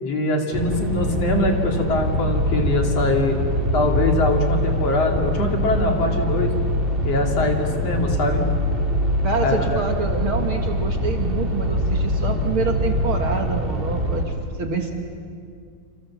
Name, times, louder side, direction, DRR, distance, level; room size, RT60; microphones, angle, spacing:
voice 1, 0.0-3.4 3.7-6.5 7.0-8.5 9.4-9.8, left 2 dB, 45° left, 2 dB, 3.3 m, -23 dB
sound 1, 0.5-14.2, equal, 15° right, 2.6 m, -23 dB
voice 2, 9.2-14.9, right 5 dB, 45° right, 4 dB, 1.9 m, -26 dB
28.5 x 27.5 x 7.3 m, 2.3 s
omnidirectional pair, 4.2 m